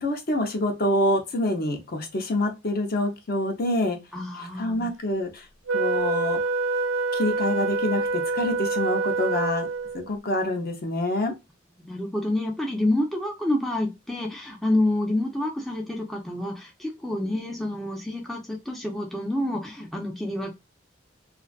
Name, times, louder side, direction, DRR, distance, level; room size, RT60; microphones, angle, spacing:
voice 1, 0.0-4.0 4.3-5.4 5.7-6.4 7.1-8.1 8.3-9.7 9.9-11.3, left 1 dB, 50° left, 0.6 m, -26 dB
voice 2, 4.1-4.9 11.8-20.5, left 1 dB, ahead, 0.4 m, -28 dB
Wind instrument woodwind instrument, 5.7-10.1, right 3 dB, 80° right, 0.4 m, -26 dB
2.5 x 2.3 x 2.2 m
head